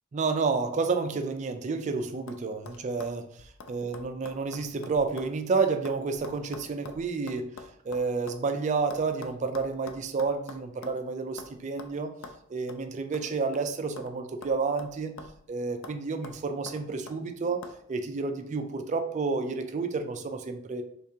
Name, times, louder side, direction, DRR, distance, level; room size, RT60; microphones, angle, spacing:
voice 1, 0.1-7.5 7.8-12.1 12.5-15.2 15.5-20.8, right 4 dB, 35° right, 7 dB, 0.3 m, -30 dB
sound 1, 1.5-1.9 2.3-2.4 2.7-5.4 5.6-8.4 8.9-11.0 11.4-11.5 11.8-11.9 12.2-12.4 12.7-12.8 13.1-14.2 14.4-15.5 15.8-16.0 16.2-17.2 17.6-17.8, left 3 dB, 65° left, 0.4 m, -46 dB
3.5 x 3.5 x 2.7 m, 0.69 s
head